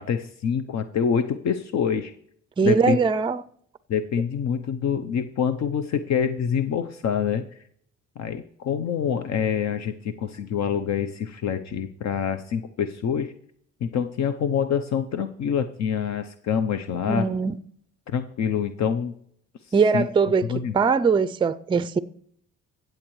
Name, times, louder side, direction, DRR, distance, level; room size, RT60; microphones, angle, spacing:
voice 1, 0.0-2.1 2.6-3.0 3.9-7.6 8.2-13.3 13.8-17.3 18.1-19.2 19.7-20.1 20.5-20.7, left 7 dB, 65° left, 0.7 m, -26 dB
voice 2, 2.6-3.4 17.1-17.6 19.7-20.5 20.7-22.0, right 5 dB, 15° right, 0.4 m, -21 dB
16.0 x 7.8 x 3.2 m
cardioid pair, 90°, 30 cm